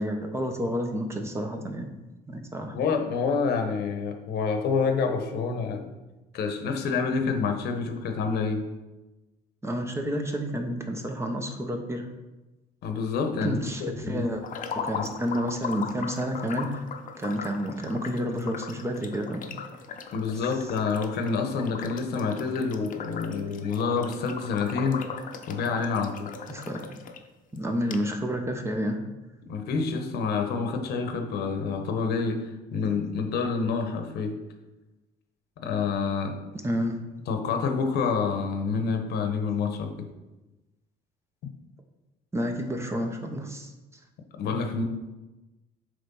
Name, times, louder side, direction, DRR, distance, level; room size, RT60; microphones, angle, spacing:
voice 1, 0.0-1.9 2.3-2.7 9.6-12.1 13.4-14.4 14.7-16.8 17.2-19.4 26.5-26.8 27.5-29.0 36.6-37.0 42.3-43.7, equal, 15° right, 4 dB, 0.9 m, -30 dB
voice 2, 2.7-5.9 6.3-8.7 12.8-14.2 14.9-15.1 20.1-25.0 25.5-26.3 29.5-34.4 35.6-36.3 37.3-40.1 44.4-44.8, left 5 dB, 75° left, 5 dB, 1.0 m, -28 dB
sound 1, 14.4-27.2 27.6-27.7 27.9-28.0, left 6 dB, 50° left, 0.8 m, -38 dB
7.6 x 3.3 x 5.4 m, 1.1 s
cardioid pair, 110°, 17 cm